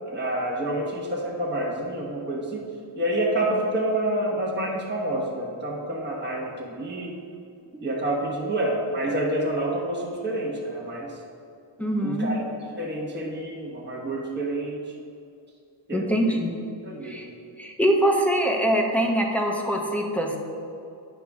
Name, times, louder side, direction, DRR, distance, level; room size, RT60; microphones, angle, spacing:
voice 1, 0.0-2.6 3.0-7.2 7.8-11.1 12.0-12.5 12.8-14.8 15.9-16.4 16.8-17.2, right 1 dB, 20° right, -3 dB, 1.3 m, -28 dB
voice 2, 11.8-12.3 15.9-16.5 17.0-17.3 17.6-20.4, equal, 5° left, 0 dB, 1.0 m, -23 dB
9.5 x 4.8 x 3.6 m, 2.6 s
cardioid pair, 80°, 48 cm